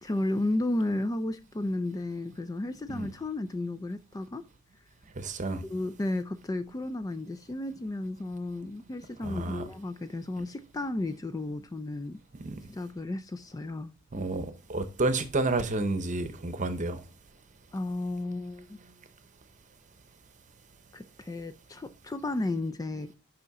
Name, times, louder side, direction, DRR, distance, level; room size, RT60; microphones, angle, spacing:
voice 1, 0.0-4.4 5.6-12.2 12.7-13.9 17.7-18.8 20.9-23.1, left 2 dB, 15° left, 0.3 m, -33 dB
voice 2, 5.2-5.6 9.2-9.6 12.4-12.6 14.1-17.0, right 2 dB, 35° right, 0.8 m, -30 dB
6.9 x 5.5 x 3.6 m
head